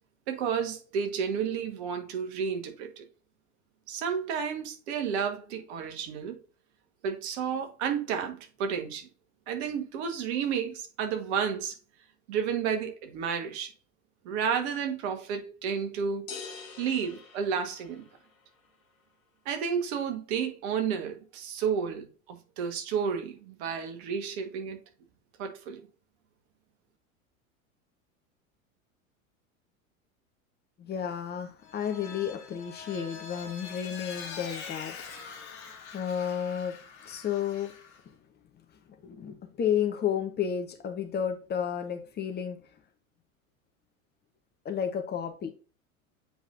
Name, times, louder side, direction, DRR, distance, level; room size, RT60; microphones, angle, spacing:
voice 1, 0.3-3.0 3.9-6.4 7.0-9.1 9.5-11.7 12.3-13.7 14.2-16.3 16.8-18.0 19.4-24.8 25.4-25.8, right 7 dB, 50° right, 1.5 m, -31 dB
sound 1, 16.3-18.3, left 5 dB, 65° left, 1.3 m, -44 dB
voice 2, 30.8-36.8 37.0-37.7 39.0-42.6 44.6-45.5, left 8 dB, 25° left, 1.0 m, -32 dB
Vehicle, 31.6-38.0, left 6 dB, 50° left, 2.4 m, -44 dB
7.8 x 5.2 x 2.6 m
figure-of-eight pair, 80°, 42 cm